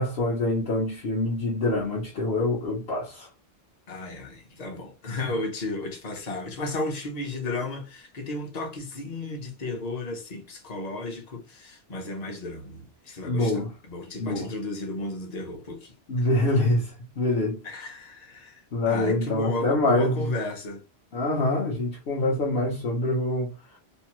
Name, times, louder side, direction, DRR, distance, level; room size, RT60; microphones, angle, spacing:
voice 1, 0.0-3.3 13.2-13.7 14.2-14.5 16.1-17.6 18.7-20.2 21.1-23.5, left 2 dB, 65° left, 1.0 m, -25 dB
voice 2, 3.9-16.3 17.6-20.8, left 2 dB, 45° left, 0.8 m, -34 dB
2.7 x 2.1 x 2.9 m
omnidirectional pair, 1.1 m